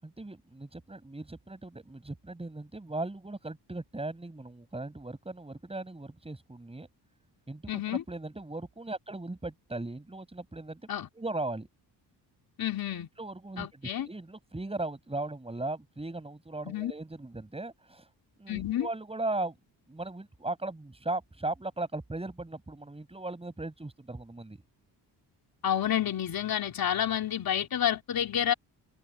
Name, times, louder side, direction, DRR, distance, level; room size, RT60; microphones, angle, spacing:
voice 1, 0.0-6.9 7.5-10.8 11.1-11.7 13.2-18.1 18.4-19.6 19.9-24.6, right 2 dB, 15° right, 7.2 m, -38 dB
voice 2, 7.7-8.0 10.9-11.1 12.6-13.1 13.6-14.1 16.6-16.9 18.5-18.9 25.6-28.5, left 10 dB, 55° left, 3.4 m, -29 dB
cardioid pair, 110°, 42 cm